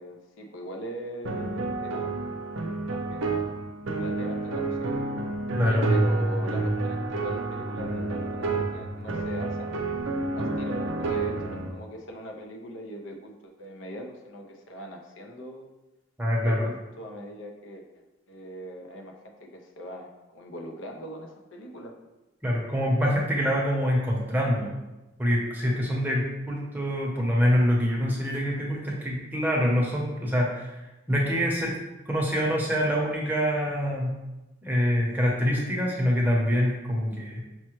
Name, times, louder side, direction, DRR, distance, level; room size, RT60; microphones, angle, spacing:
voice 1, 0.0-2.3 2.9-3.5 4.0-4.9 5.6-10.1 10.3-15.7 16.4-18.0 18.3-21.9, equal, 75° left, 1 dB, 0.6 m, -41 dB
sound 1, 1.2-11.7, right 2 dB, 75° right, 0.5 m, -29 dB
voice 2, 5.6-5.9 16.2-16.7 22.4-24.7 25.2-30.7 31.1-31.8 32.1-34.2 34.6-37.4, equal, 10° right, -3 dB, 0.7 m, -25 dB
5.8 x 2.1 x 3.0 m, 1.0 s
head